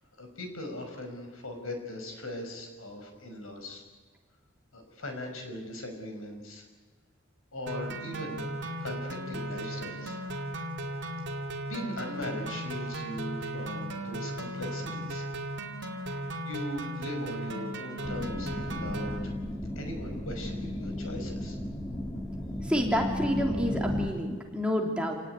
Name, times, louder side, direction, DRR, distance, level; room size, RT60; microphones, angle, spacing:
voice 1, 0.2-3.8 4.7-6.6 7.5-8.4 8.8-10.2 11.6-15.3 16.4-19.3 19.8-21.6, left 1 dB, 85° left, 5 dB, 5.6 m, -39 dB
sound 1, 7.7-19.2, right 1 dB, 60° right, 2.7 m, -36 dB
sound 2, 18.0-24.1, left 1 dB, 15° left, 1.7 m, -34 dB
voice 2, 22.6-25.1, equal, 5° right, 1 dB, 3.2 m, -29 dB
27.5 x 18.0 x 9.8 m, 1.4 s
head